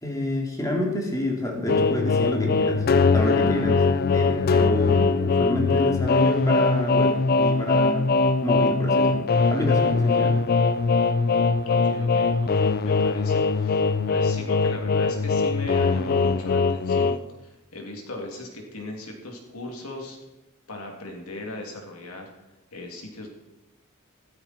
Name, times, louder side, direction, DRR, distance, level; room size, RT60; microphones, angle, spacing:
voice 1, 0.0-2.8 3.1-8.1 8.4-10.4, left 1 dB, 15° left, 0 dB, 2.8 m, -28 dB
sound 1, 1.7-17.2, left 4 dB, 45° left, 0.5 m, -21 dB
voice 2, 11.7-20.2 20.7-22.3 22.7-23.3, left 2 dB, 70° left, 1 dB, 2.9 m, -38 dB
15.5 x 13.5 x 4.4 m, 0.97 s
head